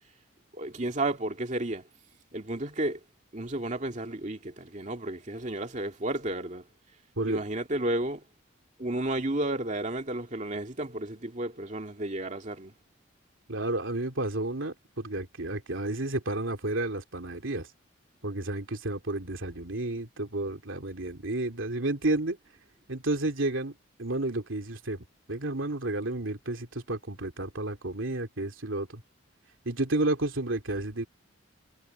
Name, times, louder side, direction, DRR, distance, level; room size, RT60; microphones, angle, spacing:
voice 1, 0.5-1.9 2.3-3.0 3.3-6.7 7.2-8.2 8.8-12.7, right 1 dB, 35° right, 2.3 m, -32 dB
voice 2, 13.5-17.7 18.2-22.4 22.9-23.7 24.0-29.0 29.6-31.1, right 2 dB, 70° right, 2.9 m, -31 dB
head